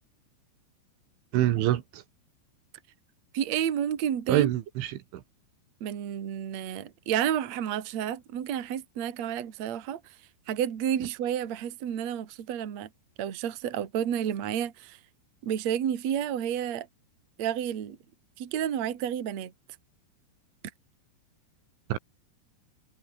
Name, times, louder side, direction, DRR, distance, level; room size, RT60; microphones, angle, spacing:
voice 1, 1.3-2.0 4.3-5.2 21.9-22.0, right 13 dB, 75° right, 3.8 m, -26 dB
voice 2, 3.3-4.5 5.8-10.0 10.5-12.9 13.2-15.0 15.4-16.9 17.4-18.0 18.4-19.5, right 9 dB, 45° right, 2.5 m, -30 dB
omnidirectional pair, 5.6 m